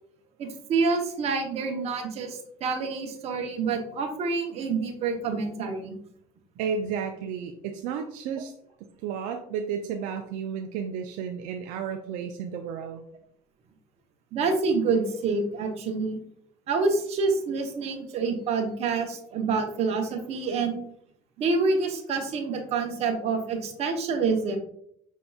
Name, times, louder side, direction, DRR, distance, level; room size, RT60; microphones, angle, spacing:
voice 1, 0.4-5.9 14.3-16.2 16.7-20.8 21.4-24.6, right 4 dB, 45° right, 4 dB, 0.8 m, -27 dB
voice 2, 6.6-8.5 8.8-13.0, right 7 dB, 70° right, 4 dB, 0.4 m, -32 dB
5.3 x 2.8 x 2.3 m, 0.68 s
supercardioid pair, 100°, 14 cm